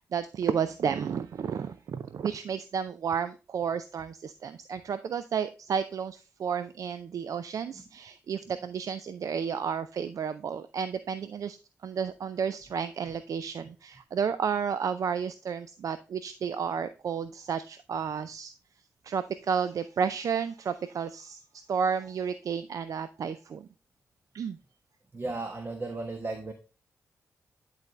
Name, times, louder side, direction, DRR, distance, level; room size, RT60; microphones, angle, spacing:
voice 1, 0.0-11.6 11.8-18.5 19.0-21.4 21.7-23.7 24.3-24.6, right 7 dB, 70° right, 12 dB, 0.4 m, -32 dB
voice 2, 25.1-26.5, right 2 dB, 35° right, 5 dB, 1.2 m, -35 dB
10.5 x 4.1 x 3.2 m, 0.33 s
supercardioid pair, 50°, 6 cm